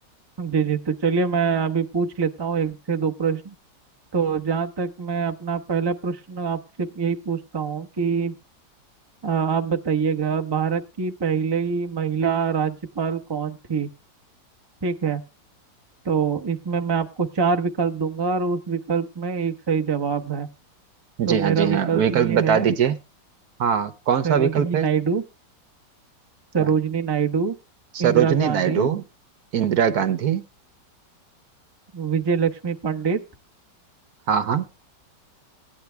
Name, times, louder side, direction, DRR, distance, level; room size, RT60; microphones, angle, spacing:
voice 1, 0.4-3.5 4.1-8.3 9.2-13.9 14.8-15.2 16.0-20.5 21.3-22.7 24.2-25.2 26.5-27.6 28.0-28.9 31.9-33.2, right 6 dB, 25° right, 4 dB, 0.6 m, -24 dB
voice 2, 21.2-22.9 23.6-24.9 26.6-26.7 27.9-29.0 29.5-30.4 34.3-34.7, right 8 dB, 60° right, 11 dB, 1.4 m, -21 dB
16.5 x 9.8 x 3.3 m, 0.29 s
omnidirectional pair, 1.9 m